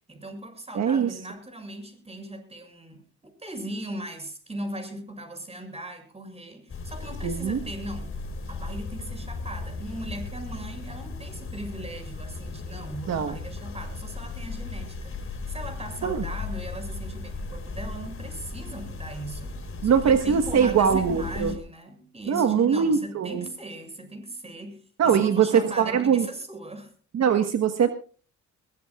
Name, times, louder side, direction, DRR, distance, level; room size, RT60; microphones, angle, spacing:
voice 1, 0.1-3.0 3.4-8.1 8.5-26.9, right 1 dB, 20° right, 7.1 m, -38 dB
voice 2, 0.7-1.1 7.2-7.6 13.1-13.4 16.0-16.2 19.8-21.5 22.3-23.4 25.0-26.3 27.1-27.9, right 7 dB, 60° right, 1.5 m, -22 dB
sound 1, 6.7-21.6, left 3 dB, 45° left, 3.9 m, -36 dB
22.0 x 18.5 x 2.5 m
cardioid pair, 90°, 30 cm